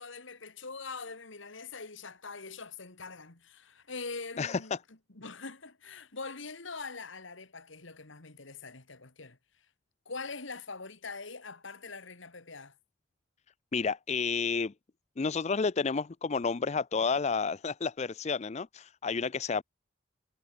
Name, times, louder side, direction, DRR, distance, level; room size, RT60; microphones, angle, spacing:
voice 1, 0.0-9.7 10.1-12.8, left 4 dB, 70° left, 2.2 m, -43 dB
voice 2, 13.7-14.7 15.2-19.6, left 5 dB, 35° left, 0.4 m, -30 dB
head